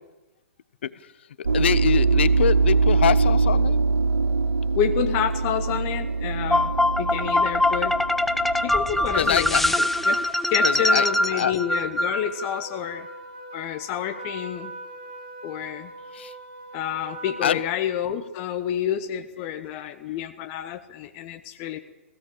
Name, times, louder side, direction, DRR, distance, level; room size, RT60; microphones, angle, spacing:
sound 1, 1.4-10.2, right 4 dB, 80° right, 1.0 m, -23 dB
voice 1, 1.5-3.8 9.2-9.6 10.6-11.1 11.3-11.5 16.1-16.3 17.4-17.6, left 9 dB, 55° left, 18 dB, 1.0 m, -24 dB
voice 2, 4.7-6.7 7.0-8.0 8.6-10.2 10.5-13.1 13.5-14.7 15.4-15.9 16.7-21.8, left 9 dB, 35° left, 8 dB, 1.1 m, -29 dB
sound 2, 6.5-12.6, left 1 dB, ahead, 0.8 m, -23 dB
Trumpet, 10.9-17.8, right 2 dB, 45° right, 3.1 m, -41 dB
21.5 x 16.5 x 8.7 m, 1.1 s
figure-of-eight pair, 115°, 7 cm